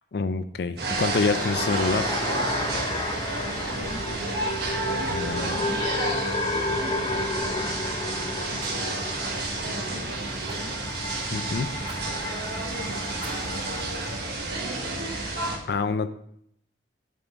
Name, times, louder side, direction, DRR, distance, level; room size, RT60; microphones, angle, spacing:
voice 1, 0.1-2.1 5.1-5.6 11.3-11.7 15.7-16.1, left 4 dB, 60° left, 11 dB, 0.4 m, -27 dB
sound 1, 0.8-15.6, right 2 dB, 55° right, 1.3 m, -30 dB
sound 2, 0.9-14.3, left 2 dB, 25° left, 0.7 m, -33 dB
voice 2, 3.3-4.5 5.3-9.3 9.6-11.5 12.5-14.3 15.2-15.6, left 1 dB, 75° left, 0 dB, 1.3 m, -44 dB
Fire, 8.6-10.0 10.5-11.0 11.8-12.0 12.4-12.5 13.2-13.8 14.3-14.4, right 3 dB, 25° right, 1.2 m, -45 dB
9.0 x 3.8 x 4.4 m, 0.71 s
head